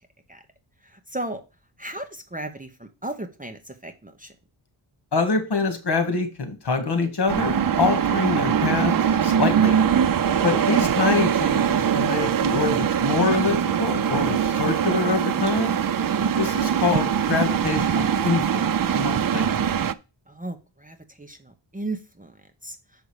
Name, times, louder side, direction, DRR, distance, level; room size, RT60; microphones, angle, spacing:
voice 1, 0.9-1.4 1.8-4.3 10.2-10.5 16.2-16.6 20.3-22.3 22.6-22.8, right 2 dB, 15° right, 6 dB, 0.8 m, -35 dB
voice 2, 5.1-8.9 9.2-9.8 10.4-15.8 16.4-19.6, left 4 dB, 55° left, 6 dB, 1.9 m, -25 dB
sound 1, 7.3-19.9, right 8 dB, 45° right, 0.5 m, -22 dB
6.6 x 5.5 x 4.8 m, 0.29 s
wide cardioid pair, 150°, 47 cm